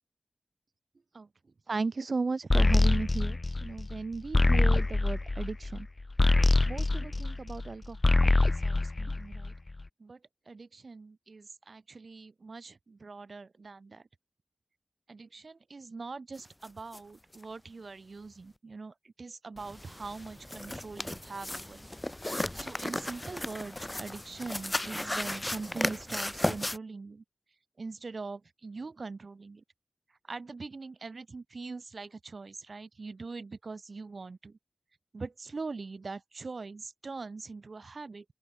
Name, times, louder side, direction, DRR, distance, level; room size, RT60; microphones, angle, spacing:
voice 1, 1.7-5.9 6.6-9.5 10.0-10.2 10.5-14.0 15.1-21.9 22.3-27.2 27.8-29.6 30.3-34.6 35.1-38.2, right 4 dB, 65° right, 6.3 m, -40 dB
sound 1, 2.5-7.7 8.0-9.7, left 2 dB, 45° left, 1.2 m, -25 dB
sound 2, 16.6-16.7 16.9-17.0 17.3-17.4 19.6-26.8, left 1 dB, 20° left, 3.9 m, -35 dB
open air
cardioid pair, 45°, 0 cm